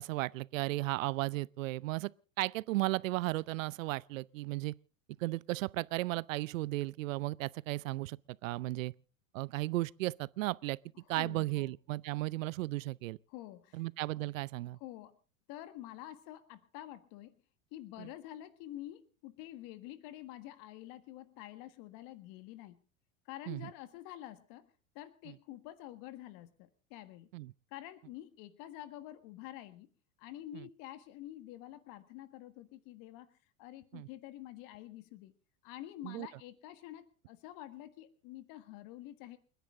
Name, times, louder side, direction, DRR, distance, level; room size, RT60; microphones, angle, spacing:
voice 1, 0.0-2.1 2.4-4.7 5.2-8.2 8.4-8.9 9.3-10.8 11.1-13.2 13.7-14.8 18.0-18.1 23.5-23.7 27.3-27.5 30.5-30.6 33.9-34.1 36.0-36.3, right 19 dB, 75° right, 0.7 m, -35 dB
voice 2, 11.0-11.7 13.3-13.8 14.7-15.2 15.5-17.4 17.7-22.8 23.2-24.7 24.9-27.3 27.7-29.9 30.2-35.3 35.6-39.4, left 14 dB, 55° left, 1.7 m, -48 dB
29.5 x 10.5 x 3.8 m
hypercardioid pair, 95°, 40 cm